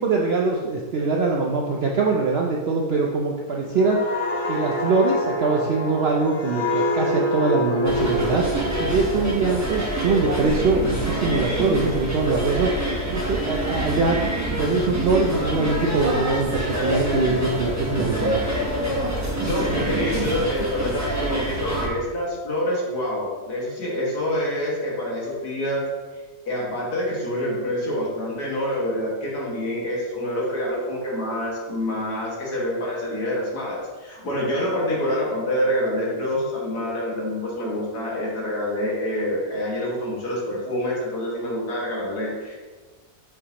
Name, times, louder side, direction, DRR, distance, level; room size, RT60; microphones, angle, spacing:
voice 1, 0.0-4.0 4.5-8.4 8.8-12.7 13.1-14.2 14.5-18.4, right 3 dB, 65° right, -1 dB, 0.6 m, -23 dB
sound 1, 3.8-11.2 11.6-11.9, left 1 dB, 55° left, 1.4 m, -28 dB
sound 2, 7.8-21.9, right 1 dB, 15° right, 0.7 m, -26 dB
voice 2, 19.4-25.8 26.1-42.5, left 1 dB, 80° left, -5 dB, 2.3 m, -26 dB
7.4 x 4.8 x 2.9 m, 1.4 s
omnidirectional pair, 1.7 m